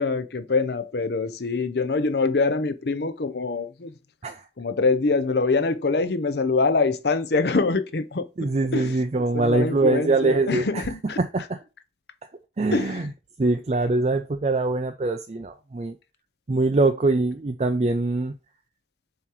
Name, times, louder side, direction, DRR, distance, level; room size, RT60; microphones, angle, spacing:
voice 1, 0.0-3.9 4.6-9.0 9.3-11.2 12.7-13.1, left 3 dB, 60° left, 0.6 m, -24 dB
voice 2, 8.4-10.8 11.2-11.6 12.6-13.1 13.4-16.0 16.5-18.4, right 2 dB, 35° right, 0.4 m, -23 dB
7.1 x 2.9 x 4.8 m
head